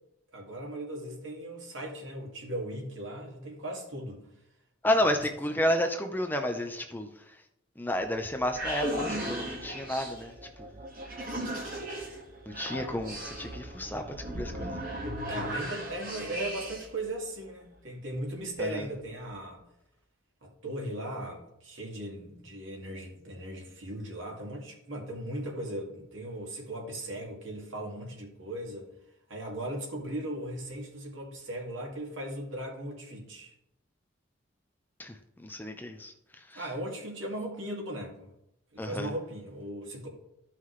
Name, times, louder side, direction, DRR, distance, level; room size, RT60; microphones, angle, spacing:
voice 1, 0.3-4.2 5.5-5.6 15.3-19.6 20.4-28.9 29.3-33.5 36.5-38.3 38.7-40.1, right 1 dB, 75° right, 0 dB, 2.2 m, -38 dB
voice 2, 4.8-7.1 7.8-10.3 10.6-10.7 12.5-14.8 18.6-18.8 35.0-35.1 35.4-36.1 36.5-36.6 38.8-39.1, left 1 dB, 10° left, 4 dB, 0.6 m, -31 dB
sound 1, 8.2-17.0, right 1 dB, 45° right, 1.9 m, -37 dB
13.5 x 5.7 x 3.2 m, 0.81 s
head